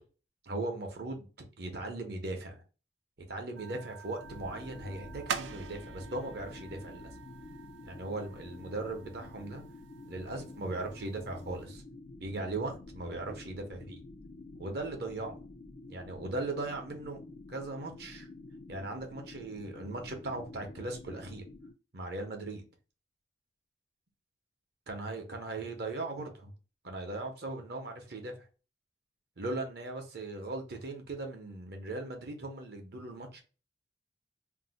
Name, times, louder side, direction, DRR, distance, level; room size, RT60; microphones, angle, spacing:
voice 1, 0.4-1.3 1.6-2.6 3.2-7.1 7.8-9.6 10.0-11.8 12.2-14.0 14.6-15.4 15.9-17.2 17.5-18.3 18.7-21.4 21.9-22.6 24.9-26.5 26.8-28.4 29.4-33.4, right 2 dB, 55° right, 0.7 m, -38 dB
sound 1, 3.6-11.7, right 7 dB, 75° right, 0.4 m, -45 dB
sound 2, 4.2-21.7, left 2 dB, 45° left, 0.3 m, -49 dB
2.6 x 2.0 x 3.8 m
head